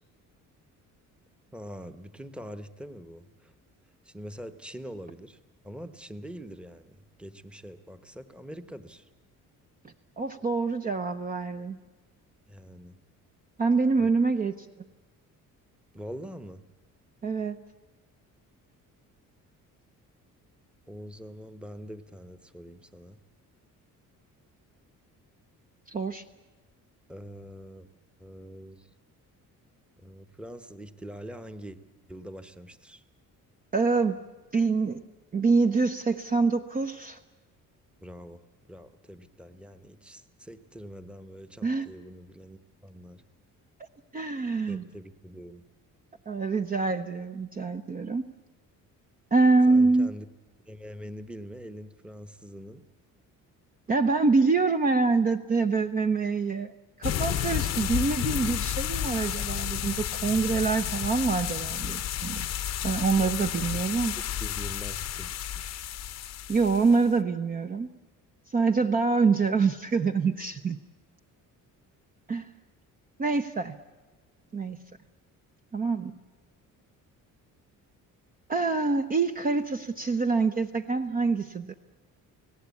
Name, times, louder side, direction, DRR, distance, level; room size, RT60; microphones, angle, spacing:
voice 1, 1.5-3.5 4.0-5.4 5.6-9.1 12.5-13.0 14.0-14.1 15.9-16.6 20.9-23.2 27.1-27.9 28.2-28.9 30.0-31.8 32.1-33.0 38.0-38.4 38.7-43.2 44.6-45.6 49.7-50.3 50.7-52.8 63.1-63.3 64.2-65.8, equal, 5° right, 10 dB, 1.0 m, -44 dB
voice 2, 10.2-11.8 13.6-14.5 17.2-17.6 25.9-26.2 33.7-34.2 34.5-35.0 35.3-37.2 41.6-41.9 44.1-44.8 46.3-48.2 49.3-50.1 53.9-56.7 57.0-62.5 62.8-64.1 66.5-67.9 68.5-70.8 72.3-72.5 73.2-73.8 74.5-74.8 75.7-76.1 78.5-81.7, right 4 dB, 25° right, 6 dB, 0.8 m, -25 dB
sound 1, 57.0-67.0, left 11 dB, 50° left, 0.9 m, -31 dB
29.5 x 18.0 x 8.4 m, 1.2 s
cardioid pair, 145°, 33 cm